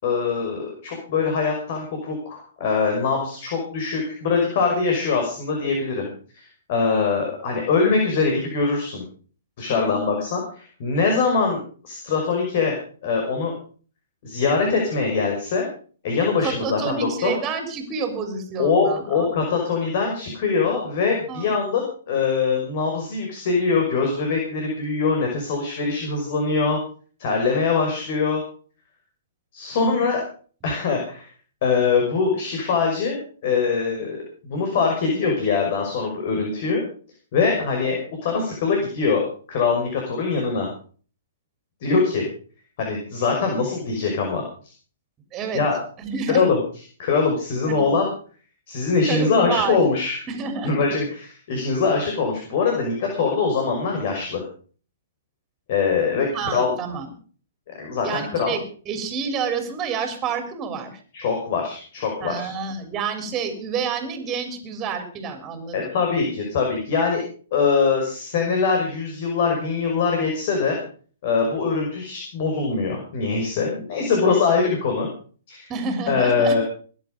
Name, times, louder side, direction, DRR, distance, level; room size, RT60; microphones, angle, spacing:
voice 1, 0.0-6.1 6.3-9.0 9.6-12.7 13.0-13.5 14.2-15.7 16.0-17.3 18.6-26.8 27.2-28.4 29.5-30.2 30.6-31.3 31.6-36.8 37.3-40.7 41.8-42.3 42.8-44.4 45.5-45.8 46.3-46.6 47.0-48.1 48.7-50.2 50.6-54.4 55.7-56.7 57.8-58.5 61.1-62.5 65.7-67.2 67.5-70.8 71.2-75.1 75.5-75.7 76.1-76.6, left 4 dB, 50° left, 2 dB, 5.8 m, -23 dB
voice 2, 9.7-10.2 16.4-19.3 21.3-21.5 29.9-30.0 45.3-45.6 46.0-46.5 47.7-47.9 49.1-49.8 50.3-50.8 56.3-57.1 58.0-61.0 62.2-65.9 75.7-76.6, right 5 dB, 20° right, 6 dB, 3.8 m, -29 dB
21.0 x 10.5 x 5.3 m, 0.43 s
hypercardioid pair, 145°, 0 cm